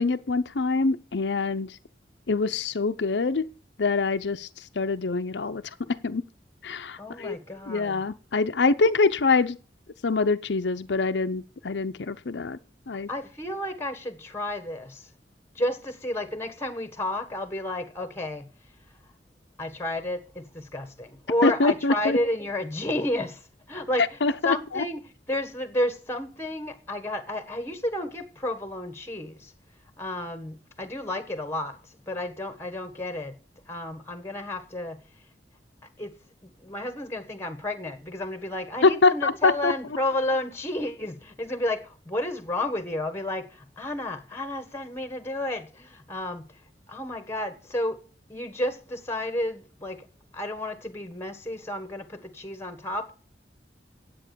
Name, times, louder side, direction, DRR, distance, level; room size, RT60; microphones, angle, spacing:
voice 1, 0.0-1.8 2.3-3.5 3.8-6.2 6.6-7.3 7.7-9.6 10.0-12.6 12.9-13.1 21.4-22.2 24.2-24.8 38.8-39.7, left 3 dB, 75° left, 0.7 m, -24 dB
voice 2, 7.0-8.0 13.1-15.1 15.5-18.5 19.6-23.4 23.7-24.2 24.4-25.0 25.3-29.5 30.0-31.8 32.1-33.4 33.7-35.0 36.0-36.1 36.4-46.5 46.9-48.0 48.3-50.1 50.3-53.1, left 1 dB, 15° left, 1.3 m, -31 dB
9.9 x 8.3 x 6.8 m
head